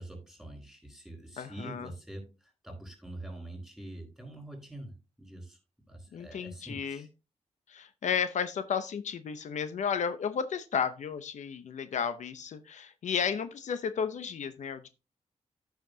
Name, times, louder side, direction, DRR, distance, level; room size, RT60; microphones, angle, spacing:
voice 1, 0.0-5.6 5.9-7.1, right 1 dB, ahead, 3 dB, 4.5 m, -45 dB
voice 2, 1.4-1.9 6.1-7.0 7.7-14.9, left 7 dB, 90° left, 11 dB, 0.7 m, -33 dB
13.5 x 5.8 x 2.7 m, 0.28 s
wide cardioid pair, 100°, 12 cm